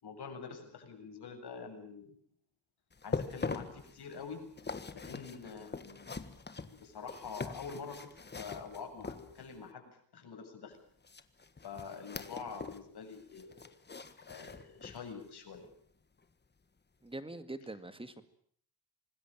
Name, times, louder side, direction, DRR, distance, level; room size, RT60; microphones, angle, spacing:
voice 1, 0.0-2.1 3.0-4.4 4.9-6.1 6.7-8.1 8.3-10.8 11.6-13.6 14.3-15.7, left 5 dB, 55° left, 5 dB, 7.7 m, -46 dB
sound 1, 2.9-9.7 11.0-12.9 13.1-15.1 15.5-15.7 16.2-16.3, left 4 dB, 20° left, 1.6 m, -43 dB
voice 2, 17.0-18.2, right 2 dB, 10° right, 11 dB, 2.1 m, -43 dB
25.5 x 20.5 x 9.0 m, 0.62 s
wide cardioid pair, 145°, 45 cm